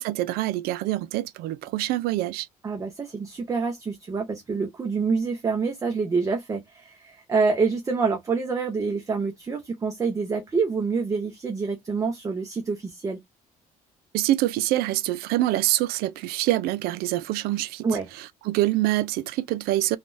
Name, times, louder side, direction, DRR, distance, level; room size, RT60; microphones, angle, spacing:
voice 1, 0.0-2.5 14.1-17.9 18.1-20.0, right 15 dB, 90° right, 0.4 m, -25 dB
voice 2, 2.6-13.2 17.8-18.1, right 4 dB, 20° right, 0.6 m, -27 dB
3.3 x 2.3 x 2.5 m
cardioid pair, 150°, 16 cm